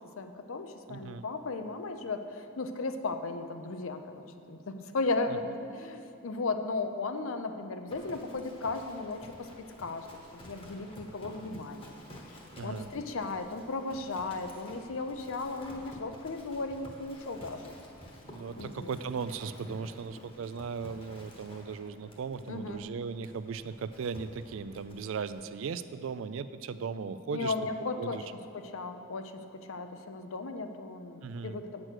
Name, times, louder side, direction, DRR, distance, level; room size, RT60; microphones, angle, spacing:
voice 1, 0.2-9.5 9.8-12.0 12.6-17.7 18.6-18.9 22.5-22.8 27.3-31.8, left 3 dB, 75° left, 7 dB, 0.6 m, -36 dB
voice 2, 0.9-1.2 5.3-5.4 12.6-12.9 18.2-27.5 28.0-28.2 31.2-31.6, right 5 dB, 70° right, 13 dB, 0.4 m, -37 dB
Livestock farm animals working animals, 7.9-25.5, left 1 dB, 25° left, 1.1 m, -51 dB
8.8 x 6.2 x 6.4 m, 2.5 s
head